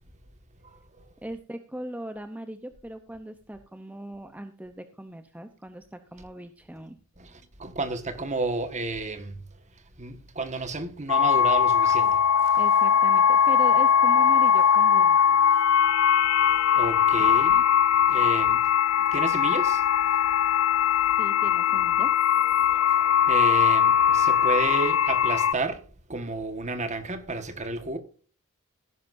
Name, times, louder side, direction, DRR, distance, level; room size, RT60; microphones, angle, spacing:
voice 1, 0.6-1.0 7.2-9.4 10.0-12.2 16.7-17.6 18.1-18.7 19.1-20.1 23.3-28.0, right 3 dB, 30° right, 1.6 m, -31 dB
voice 2, 1.2-7.0 12.6-15.2 21.0-22.9, right 1 dB, 5° right, 0.8 m, -39 dB
sound 1, 11.1-25.5, left 8 dB, 70° left, 0.5 m, -20 dB
17.5 x 10.0 x 2.7 m
head